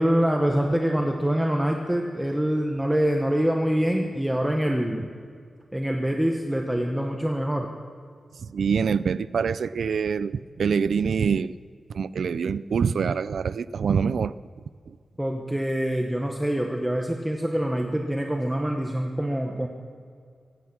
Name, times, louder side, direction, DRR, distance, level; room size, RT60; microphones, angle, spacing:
voice 1, 0.0-5.1 5.7-7.7 15.2-19.7, right 1 dB, 5° right, 1 dB, 1.0 m, -25 dB
voice 2, 8.4-11.5 11.9-14.3 14.9-15.0, right 6 dB, 80° right, 15 dB, 0.4 m, -25 dB
24.5 x 9.2 x 6.0 m, 2.2 s
wide cardioid pair, 165°, 0 cm